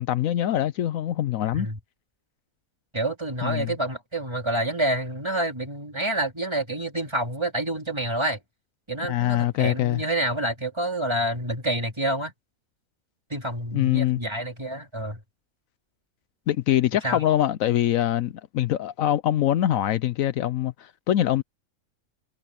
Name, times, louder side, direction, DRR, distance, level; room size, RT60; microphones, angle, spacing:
voice 1, 0.0-1.7 3.4-3.7 9.1-10.0 13.7-14.2 16.5-21.4, left 12 dB, 75° left, 1.0 m, -24 dB
voice 2, 2.9-8.4 8.9-12.3 13.3-15.2 17.0-17.2, right 1 dB, 20° right, 3.4 m, -28 dB
omnidirectional pair, 1.5 m